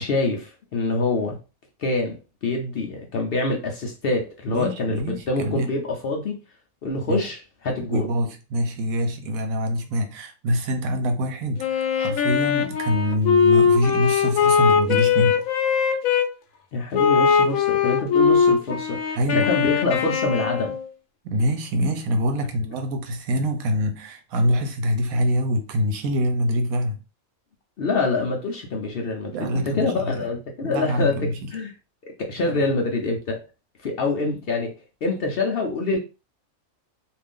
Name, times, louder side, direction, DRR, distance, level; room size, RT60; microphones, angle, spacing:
voice 1, 0.0-1.4 1.8-6.4 6.8-7.4 7.6-8.1 16.7-20.8 27.8-31.7 32.2-33.5 33.8-34.7 35.0-36.0, left 3 dB, 60° left, 0.6 m, -25 dB
voice 2, 4.5-5.7 7.1-7.3 7.9-15.4 19.2-19.5 21.2-27.0 29.3-30.2 30.6-31.5 32.4-32.6, equal, 85° right, 1.1 m, -25 dB
Wind instrument woodwind instrument, 11.6-16.3 16.9-20.9, left 6 dB, 85° left, 1.1 m, -20 dB
2.5 x 2.5 x 3.5 m
omnidirectional pair, 1.4 m